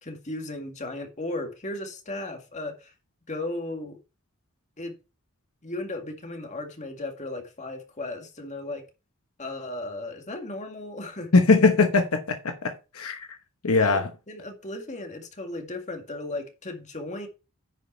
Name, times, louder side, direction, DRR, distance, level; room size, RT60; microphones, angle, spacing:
voice 1, 0.0-2.9 3.3-4.0 4.8-5.0 5.6-8.9 9.4-11.3 13.7-17.3, left 2 dB, 35° left, 2.0 m, -35 dB
voice 2, 11.3-13.3 13.6-14.1, left 3 dB, 75° left, 1.1 m, -21 dB
9.8 x 5.3 x 4.4 m
head